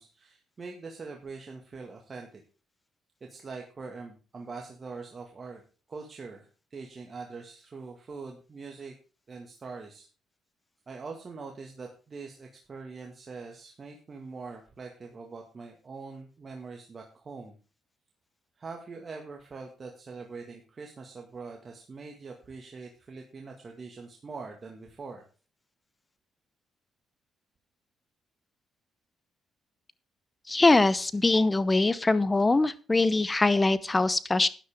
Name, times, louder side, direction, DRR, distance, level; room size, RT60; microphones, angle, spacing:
voice 1, 0.0-2.4 3.2-5.6 5.9-8.9 9.3-10.1 10.9-17.6 18.6-25.2, right 4 dB, 35° right, 2 dB, 1.8 m, -43 dB
voice 2, 30.5-34.5, left 2 dB, 20° left, 17 dB, 0.8 m, -23 dB
12.5 x 10.0 x 3.6 m, 0.35 s
cardioid pair, 90°, 0 cm